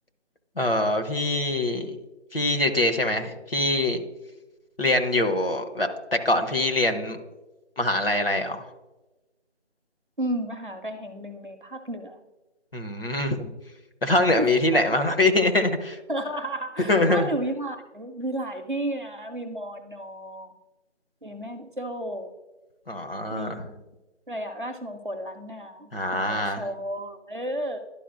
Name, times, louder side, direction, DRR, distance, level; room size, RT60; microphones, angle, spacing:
voice 1, 0.6-2.0 2.3-4.0 4.8-7.2 7.8-8.7 12.7-13.5 14.0-16.0 16.9-17.3 22.9-23.6 25.9-26.6, left 2 dB, 55° left, 5 dB, 0.8 m, -24 dB
voice 2, 10.2-12.2 14.4-14.8 16.1-20.5 21.2-22.3 23.3-23.8 24.3-27.8, right 1 dB, 45° right, 6 dB, 0.6 m, -33 dB
11.5 x 4.6 x 2.5 m, 1.1 s
figure-of-eight pair, 180°, 35 cm